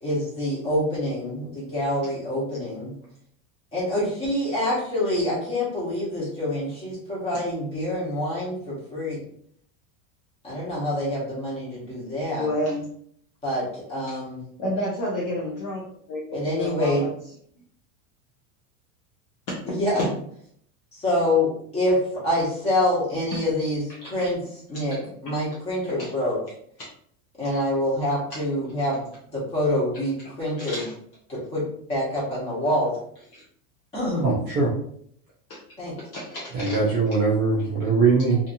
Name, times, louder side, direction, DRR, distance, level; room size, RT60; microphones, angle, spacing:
voice 1, 0.0-2.9 3.7-9.2 10.4-12.5 13.4-14.4 16.3-17.0 19.7-20.0 20.9-22.0 22.2-24.4 24.7-25.0 25.2-26.4 27.4-29.1 29.3-30.8 31.3-31.6 31.9-32.9 33.9-34.2 35.8-35.9, left 1 dB, 15° left, -7 dB, 1.0 m, -26 dB
voice 2, 12.4-12.9 14.1-14.2 14.6-15.8 16.1-17.1 19.9-20.1 24.0-24.2 26.0-26.1 26.8-26.9 30.6-30.9 33.3-33.4 35.5-35.6 36.0-36.8, left 1 dB, 35° left, -5 dB, 0.4 m, -30 dB
voice 3, 34.2-34.7 36.5-38.4, right 4 dB, 25° right, -6 dB, 0.4 m, -21 dB
2.7 x 2.5 x 2.6 m, 0.65 s
supercardioid pair, 170°, 41 cm